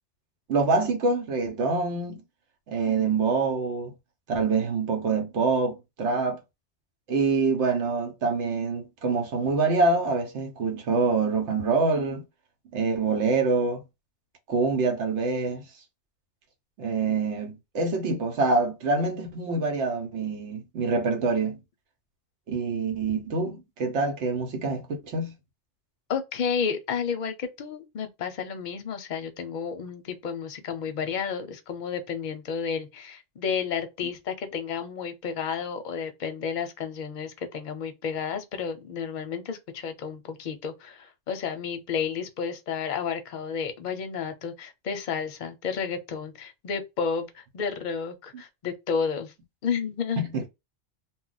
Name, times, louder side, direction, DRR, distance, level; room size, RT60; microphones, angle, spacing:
voice 1, 0.5-2.2 2.7-3.9 4.3-6.4 7.1-12.2 12.7-13.8 14.5-15.6 16.8-21.6 22.5-25.3 50.2-50.4, right 4 dB, 80° right, 1.0 m, -25 dB
voice 2, 26.1-49.3 49.6-50.2, left 6 dB, 50° left, 0.6 m, -31 dB
2.3 x 2.1 x 3.8 m
omnidirectional pair, 1.2 m